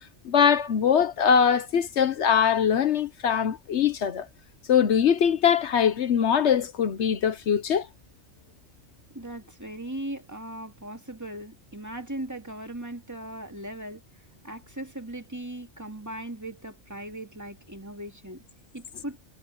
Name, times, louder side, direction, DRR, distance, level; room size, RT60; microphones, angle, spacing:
voice 1, 0.2-4.3 4.7-7.9, left 7 dB, 70° left, 1.1 m, -22 dB
voice 2, 9.1-14.0 14.4-18.4 18.7-19.2, right 1 dB, 15° right, 2.3 m, -38 dB
omnidirectional pair, 1.2 m